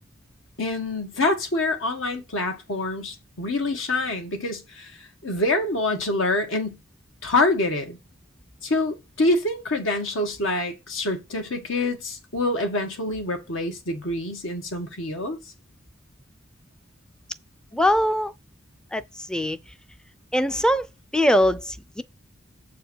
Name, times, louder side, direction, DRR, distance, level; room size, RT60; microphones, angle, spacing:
voice 1, 0.6-6.8 7.2-8.0 8.6-15.4, left 2 dB, 75° left, 1.7 m, -26 dB
voice 2, 17.7-18.3 18.9-19.0 19.3-19.6 20.3-20.9 21.1-22.0, equal, 5° left, 0.5 m, -21 dB
7.2 x 4.7 x 6.3 m
head